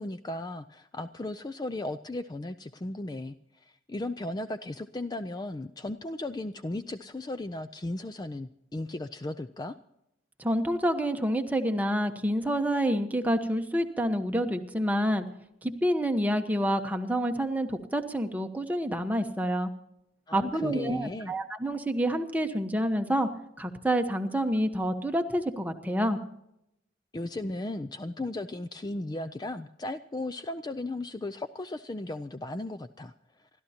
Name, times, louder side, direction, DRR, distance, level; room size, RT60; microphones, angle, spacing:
voice 1, 0.0-9.8 20.3-21.3 27.1-33.1 33.4-33.5, left 2 dB, 20° left, 10 dB, 0.4 m, -36 dB
voice 2, 10.4-15.2 15.6-19.7 20.3-23.3 23.6-26.2, equal, 10° right, 5 dB, 1.1 m, -28 dB
28.5 x 13.0 x 2.9 m, 0.80 s
head